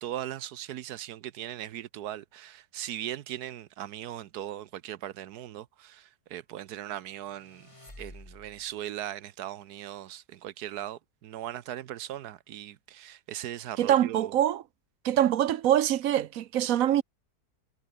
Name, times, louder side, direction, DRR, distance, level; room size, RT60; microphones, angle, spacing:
voice 1, 0.0-7.7 8.0-14.3, right 12 dB, 85° right, 1.3 m, -39 dB
sound 1, 7.0-8.8, left 1 dB, 20° left, 3.7 m, -50 dB
voice 2, 13.8-14.6 15.0-17.0, right 11 dB, 65° right, 1.1 m, -24 dB
omnidirectional pair, 1.6 m